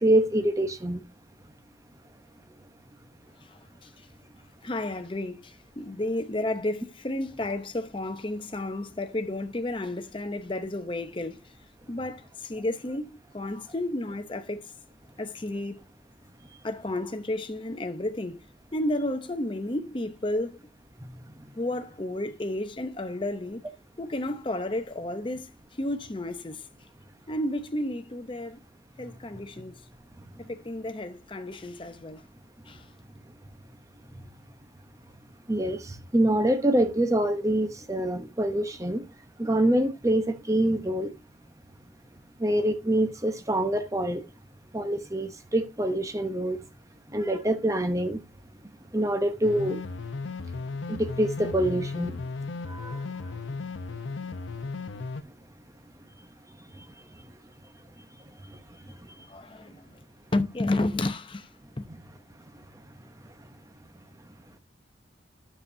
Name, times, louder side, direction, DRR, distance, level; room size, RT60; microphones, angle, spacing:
voice 1, 0.0-1.0 35.5-39.0 39.4-41.1 42.4-44.2 44.7-46.6 47.1-48.2 48.9-49.8 50.9-52.1 52.7-53.0, right 1 dB, 15° right, 0.8 m, -25 dB
voice 2, 3.4-4.1 4.6-11.5 11.9-14.7 15.2-15.8 16.6-18.4 18.7-20.6 21.5-23.6 24.0-25.5 25.8-26.7 27.3-28.6 29.0-29.8 30.5-32.2 32.7-32.9 59.3-60.0 60.3-61.5 61.8-61.9, left 1 dB, 25° left, 0.7 m, -32 dB
sound 1, 49.4-55.2, left 3 dB, 90° left, 0.7 m, -35 dB
9.8 x 6.9 x 2.6 m
head